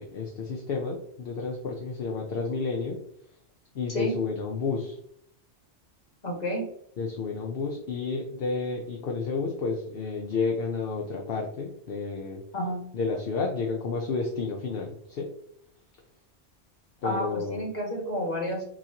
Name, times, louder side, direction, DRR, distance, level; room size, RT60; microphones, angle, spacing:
voice 1, 0.0-3.0 3.7-5.0 7.0-12.4 12.9-15.3 17.0-17.7, left 4 dB, 60° left, 1 dB, 0.9 m, -31 dB
voice 2, 6.2-6.7 12.5-12.8 17.0-18.6, equal, 35° left, -2 dB, 1.6 m, -30 dB
6.2 x 3.0 x 2.9 m, 0.70 s
omnidirectional pair, 1.2 m